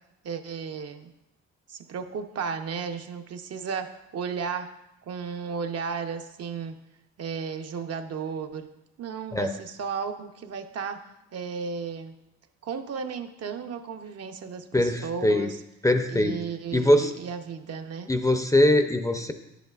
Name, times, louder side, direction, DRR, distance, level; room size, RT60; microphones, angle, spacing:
voice 1, 0.2-1.1 1.7-4.7 5.1-6.8 7.2-8.7 9.0-11.0 11.3-12.1 12.6-15.6 16.1-18.1, right 6 dB, 55° right, 6 dB, 0.7 m, -34 dB
voice 2, 14.7-15.5 15.8-16.4 16.7-17.1 18.1-19.3, left 1 dB, 10° left, 7 dB, 0.5 m, -22 dB
10.5 x 8.0 x 2.4 m, 0.88 s
cardioid pair, 90°, 30 cm